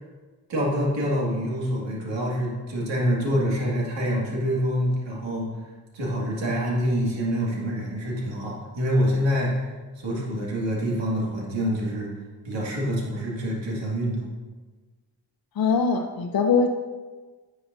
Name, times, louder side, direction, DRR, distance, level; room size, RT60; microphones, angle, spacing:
voice 1, 0.5-5.5 5.9-12.1 12.4-14.2, equal, 70° right, -3 dB, 2.2 m, -26 dB
voice 2, 15.6-16.7, left 5 dB, 50° left, 4 dB, 0.7 m, -22 dB
9.9 x 6.6 x 2.7 m, 1.3 s
supercardioid pair, 40°, 45 cm